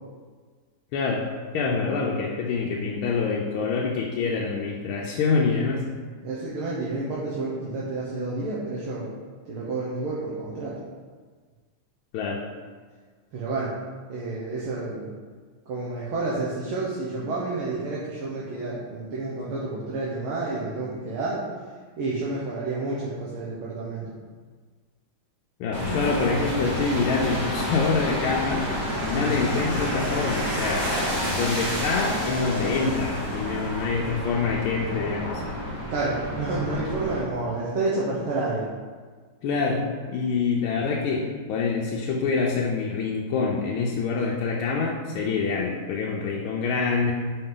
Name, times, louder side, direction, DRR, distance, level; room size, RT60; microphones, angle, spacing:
voice 1, 0.9-1.3 1.5-5.9 12.1-12.4 25.6-28.7 29.0-35.3 39.4-47.1, left 4 dB, 90° left, -2 dB, 1.5 m, -26 dB
voice 2, 6.2-9.1 9.5-10.8 13.3-13.7 14.1-15.1 15.7-21.5 22.0-24.1 35.9-38.6, right 3 dB, 80° right, -6 dB, 1.8 m, -29 dB
sound 1, 25.7-37.2, equal, 50° right, 2.3 m, -29 dB
5.5 x 4.7 x 3.8 m, 1.5 s
omnidirectional pair, 2.3 m